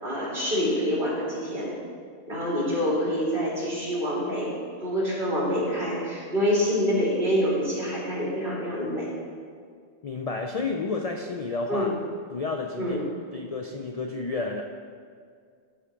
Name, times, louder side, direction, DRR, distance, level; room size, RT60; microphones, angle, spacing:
voice 1, 0.0-1.7 2.3-4.5 4.8-9.1 11.7-11.9 12.8-13.0, equal, 50° right, -6 dB, 3.0 m, -26 dB
voice 2, 10.0-11.9 12.3-13.0 13.3-14.6, left 3 dB, 50° left, 2 dB, 0.5 m, -31 dB
13.0 x 4.4 x 5.1 m, 2.1 s
omnidirectional pair, 1.1 m